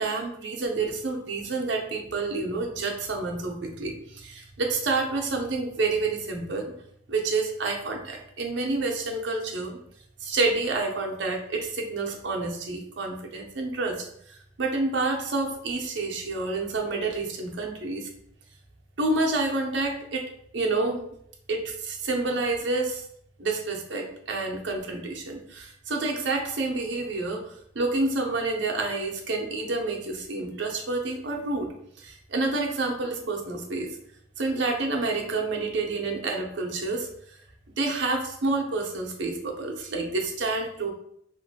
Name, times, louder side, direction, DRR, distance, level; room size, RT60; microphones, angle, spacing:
voice 1, 0.0-6.7 7.1-9.8 10.2-18.1 19.0-20.2 20.5-21.1 21.5-23.0 23.4-27.4 27.7-31.7 32.0-33.9 34.4-37.1 37.8-40.9, right 3 dB, 70° right, 1 dB, 0.6 m, -28 dB
2.9 x 2.5 x 2.7 m, 0.69 s
head